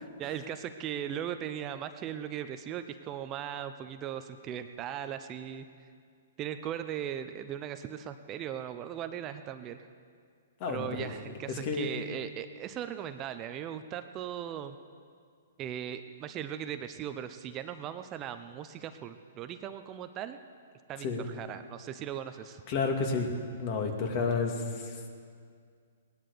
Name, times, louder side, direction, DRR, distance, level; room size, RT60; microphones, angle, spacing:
voice 1, 0.2-5.7 6.4-9.9 10.7-14.8 15.6-20.4 20.9-22.6, right 10 dB, 30° right, 9 dB, 0.7 m, -38 dB
voice 2, 10.6-11.1 11.5-11.9 21.0-21.2 22.7-23.3 23.6-25.1, left 4 dB, 40° left, 3 dB, 2.2 m, -31 dB
18.5 x 11.0 x 6.9 m, 2.1 s
hypercardioid pair, 130°, 0 cm